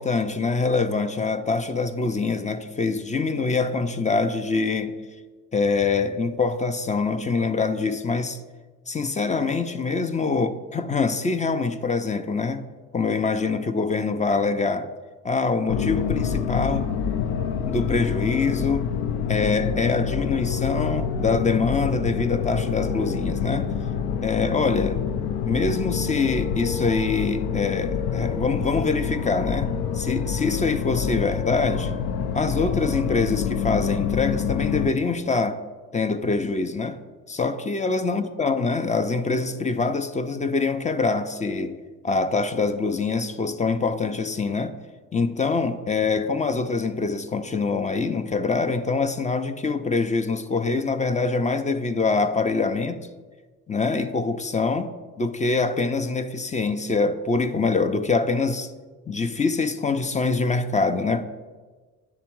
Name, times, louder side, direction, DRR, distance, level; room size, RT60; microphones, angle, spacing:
voice 1, 0.0-5.0 5.5-8.4 8.9-12.6 12.9-14.9 15.2-16.9 17.6-18.9 19.3-23.7 24.2-25.0 25.5-31.9 32.3-35.6 35.9-37.0 37.3-44.7 45.1-53.0 53.7-58.7 59.1-61.2, left 4 dB, 20° left, 0.5 m, -24 dB
sound 1, 15.7-34.9, left 7 dB, 65° left, 0.6 m, -27 dB
9.5 x 3.4 x 4.6 m
hypercardioid pair, 55°, 40 cm